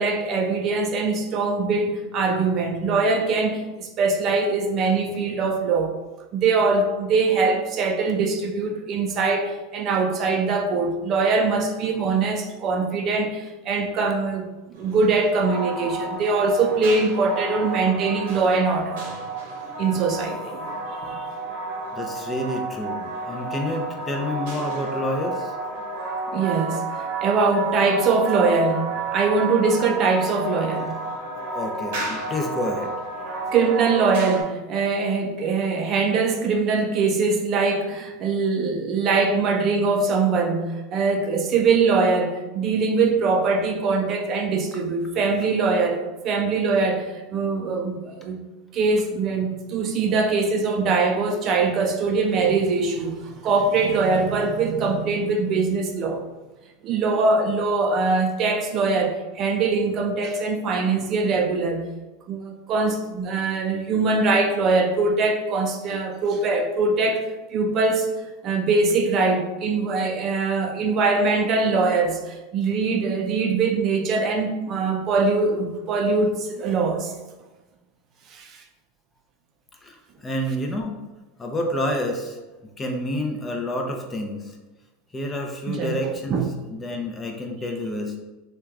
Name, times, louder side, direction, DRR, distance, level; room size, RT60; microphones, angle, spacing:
voice 1, 0.0-6.0 6.3-19.0 19.8-20.6 21.0-21.2 26.3-30.9 33.5-48.4 48.7-56.2 56.8-61.8 62.3-68.1 68.4-77.1 78.3-78.6 85.7-85.9 86.3-86.5, right 4 dB, 45° right, 4 dB, 0.5 m, -22 dB
sound 1, 14.7-34.4, right 3 dB, 75° right, 0.8 m, -31 dB
voice 2, 21.9-25.5 31.5-32.9 79.8-81.0 81.4-82.4 82.8-84.5 85.1-88.2, left 1 dB, 20° left, 2 dB, 0.6 m, -29 dB
2.8 x 2.3 x 3.4 m, 1.1 s
hypercardioid pair, 100°, 0 cm